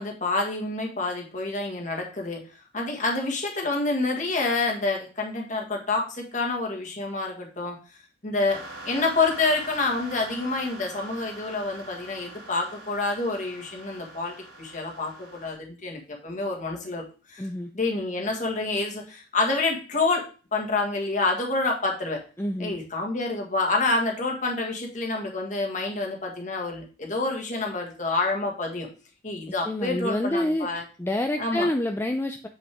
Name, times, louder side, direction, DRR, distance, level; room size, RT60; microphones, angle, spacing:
voice 1, 0.0-2.5 2.7-7.8 8.2-17.0 17.3-17.5 17.7-22.2 22.6-28.9 29.2-30.8 31.4-31.7, left 3 dB, 40° left, 1 dB, 1.7 m, -28 dB
sound 1, 8.5-15.5, right 2 dB, 90° right, 3.2 m, -43 dB
voice 2, 17.4-17.7 22.4-22.8 29.6-32.5, left 1 dB, 10° left, 5 dB, 0.4 m, -28 dB
7.7 x 5.7 x 3.5 m, 0.36 s
head